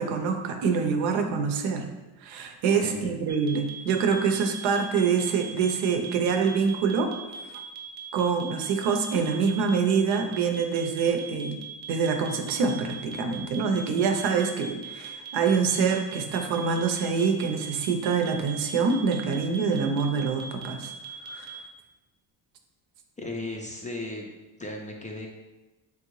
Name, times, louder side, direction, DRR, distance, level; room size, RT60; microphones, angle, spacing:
voice 1, 0.0-1.9 2.2-7.1 7.5-7.6 8.1-11.6 11.9-20.9 21.3-21.5, right 5 dB, 80° right, 5 dB, 0.7 m, -25 dB
sound 1, 3.3-21.6, right 6 dB, 20° right, 0.7 m, -40 dB
voice 2, 23.2-24.3 24.6-25.3, left 2 dB, 20° left, 0 dB, 0.3 m, -35 dB
3.6 x 3.2 x 3.0 m, 1.1 s
cardioid pair, 100°, 46 cm